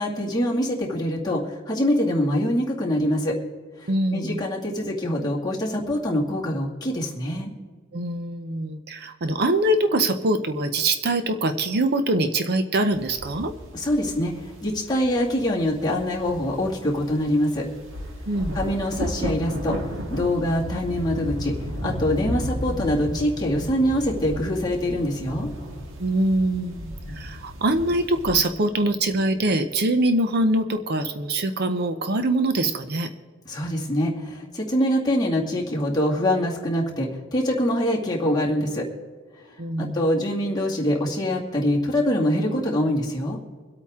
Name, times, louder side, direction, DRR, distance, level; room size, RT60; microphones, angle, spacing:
voice 1, 0.0-3.4 3.8-7.5 13.7-17.7 18.5-21.5 21.8-25.5 33.5-38.8 39.8-43.4, left 1 dB, 20° left, -3 dB, 2.2 m, -24 dB
voice 2, 3.9-4.4 7.9-13.5 18.3-18.6 26.0-33.1 39.6-40.0, right 1 dB, 50° right, 9 dB, 0.7 m, -23 dB
sound 1, 12.9-28.4, equal, 70° right, 1.7 m, -34 dB
25.5 x 8.5 x 3.7 m, 1.5 s
head